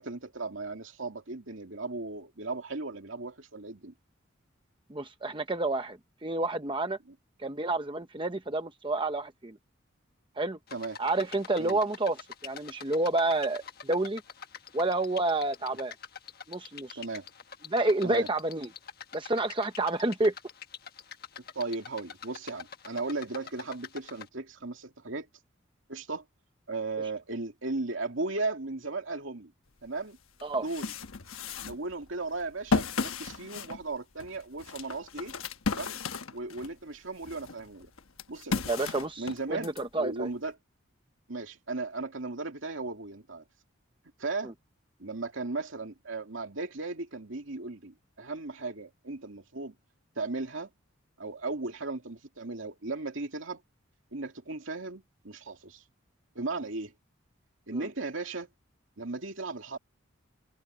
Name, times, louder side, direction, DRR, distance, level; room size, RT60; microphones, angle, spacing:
voice 1, 0.0-3.9 7.1-7.2 10.7-11.0 11.6-11.8 17.0-17.3 18.0-18.3 21.5-25.3 25.9-26.2 26.7-29.5 29.8-30.2 30.5-30.9 31.5-35.4 35.7-36.0 36.3-37.9 38.3-38.7 39.2-40.6 41.3-43.4 44.2-44.5 45.0-49.7 50.2-50.7 51.2-53.6 54.1-55.8 56.3-56.9 57.7-58.5 59.0-59.8, right 3 dB, 70° right, 2.6 m, -36 dB
voice 2, 4.9-7.0 7.4-9.6 10.4-10.6 11.0-14.2 14.7-15.9 16.5-17.0 17.7-18.7 19.1-20.3 30.4-30.7 38.7-40.3 44.4-44.5 57.7-57.9, right 2 dB, 25° right, 0.9 m, -29 dB
sound 1, 10.7-24.3, left 7 dB, 45° left, 1.4 m, -46 dB
sound 2, 29.9-30.0 30.4-36.8 37.2-39.8, left 4 dB, 85° left, 1.1 m, -34 dB
head